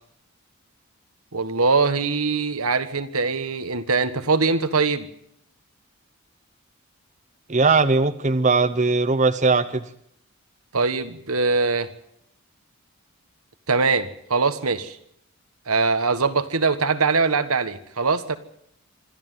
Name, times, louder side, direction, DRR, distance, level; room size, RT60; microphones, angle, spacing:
voice 1, 1.3-5.1 10.7-11.9 13.7-15.0 15.7-18.4, right 4 dB, 85° right, 11 dB, 1.6 m, -22 dB
voice 2, 7.5-9.8, right 3 dB, 35° right, 9 dB, 0.9 m, -19 dB
26.0 x 13.0 x 9.4 m, 0.71 s
head